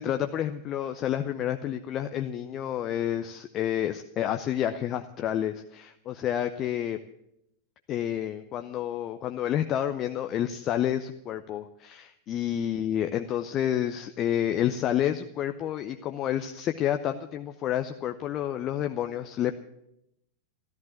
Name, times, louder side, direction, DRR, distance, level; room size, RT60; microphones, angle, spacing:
voice 1, 0.0-7.0 7.9-19.6, left 10 dB, 35° left, 8 dB, 0.7 m, -29 dB
14.0 x 13.5 x 7.3 m, 0.81 s
figure-of-eight pair, 90°, 0 cm